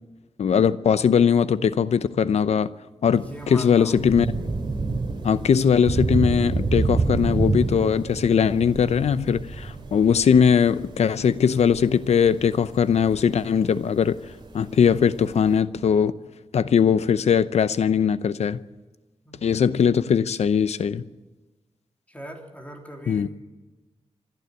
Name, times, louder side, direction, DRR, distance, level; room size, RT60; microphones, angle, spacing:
voice 1, 0.4-2.7 3.0-4.3 5.2-14.2 14.5-16.1 16.5-18.6 19.4-21.0 23.1-23.3, left 7 dB, 85° left, 0.7 m, -20 dB
Thunder / Rain, 3.1-15.6, right 3 dB, 45° right, 2.8 m, -29 dB
voice 2, 3.2-4.1 19.2-19.5 22.1-23.3, right 1 dB, 15° left, 3.3 m, -40 dB
27.0 x 12.5 x 8.2 m
wide cardioid pair, 110°, 11 cm